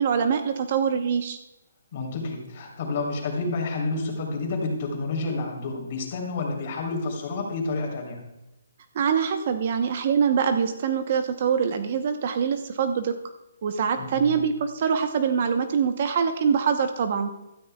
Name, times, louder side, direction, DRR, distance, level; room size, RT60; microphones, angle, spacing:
voice 1, 0.0-1.4 8.9-13.1 13.6-17.3, right 7 dB, 45° right, 7 dB, 0.9 m, -24 dB
voice 2, 1.9-8.2 14.0-14.3, left 3 dB, 40° left, -2 dB, 3.4 m, -29 dB
15.5 x 13.0 x 2.3 m, 0.96 s
hypercardioid pair, 155°, 0 cm